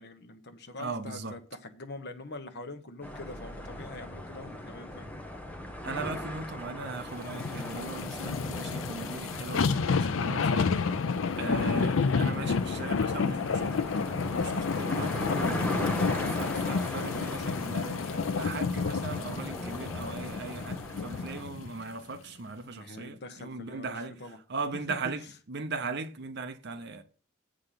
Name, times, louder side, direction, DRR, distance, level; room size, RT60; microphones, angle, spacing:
voice 1, 0.0-5.1 20.6-20.7 22.6-24.4 24.7-25.0, left 2 dB, 55° left, 1.1 m, -44 dB
voice 2, 0.8-1.4 5.8-10.8 11.4-13.8 14.3-15.6 16.1-24.2 24.5-27.0, right 3 dB, 55° right, 0.8 m, -38 dB
sound 1, 3.0-21.4, left 1 dB, 10° left, 1.0 m, -39 dB
sound 2, 7.3-21.7 22.1-22.2, left 5 dB, 70° left, 0.5 m, -30 dB
8.0 x 5.1 x 5.8 m
head